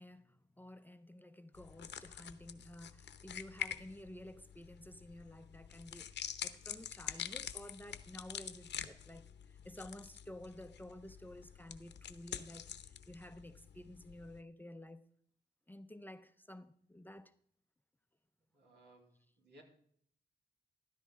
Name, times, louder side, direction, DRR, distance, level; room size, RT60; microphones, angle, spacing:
voice 1, 0.0-15.0 15.7-17.3, left 1 dB, 10° left, 0.6 m, -52 dB
sound 1, 1.5-14.4, left 9 dB, 85° left, 0.8 m, -47 dB
voice 2, 18.5-19.6, right 1 dB, 75° right, 3.8 m, -62 dB
14.5 x 12.5 x 3.7 m
wide cardioid pair, 115°, 18 cm